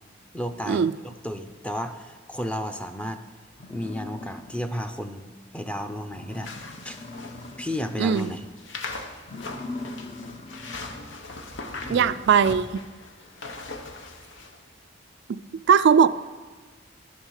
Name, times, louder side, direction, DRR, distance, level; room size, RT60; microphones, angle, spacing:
voice 1, 0.3-3.2 3.7-6.5 6.8-7.0 7.6-8.5 11.7-12.2, equal, 5° left, 7 dB, 0.6 m, -33 dB
sound 1, 3.5-4.9 5.3-5.4 5.8-5.9 6.1-8.0 8.4-8.7 9.2-11.2, left 2 dB, 35° left, 0.8 m, -41 dB
sound 2, 6.3-14.6, left 3 dB, 70° left, 1.0 m, -40 dB
voice 2, 8.0-8.3 11.9-12.8 15.3-15.4 15.7-16.1, right 7 dB, 65° right, 13 dB, 0.3 m, -19 dB
11.5 x 7.2 x 6.4 m, 1.4 s
head